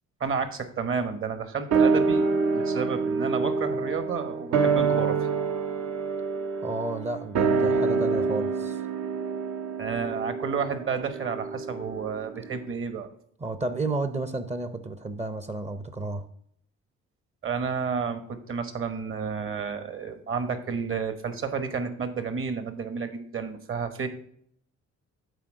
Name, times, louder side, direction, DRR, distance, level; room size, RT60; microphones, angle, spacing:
voice 1, 0.2-5.2 9.8-13.1 17.4-24.1, right 6 dB, 45° right, 9 dB, 1.2 m, -31 dB
sound 1, 1.7-12.3 12.6-12.7, right 4 dB, 60° right, 0.8 m, -26 dB
voice 2, 6.6-8.8 13.4-16.3, right 2 dB, 20° right, 11 dB, 0.6 m, -32 dB
8.3 x 3.7 x 6.2 m, 0.65 s
cardioid pair, 90°, 30 cm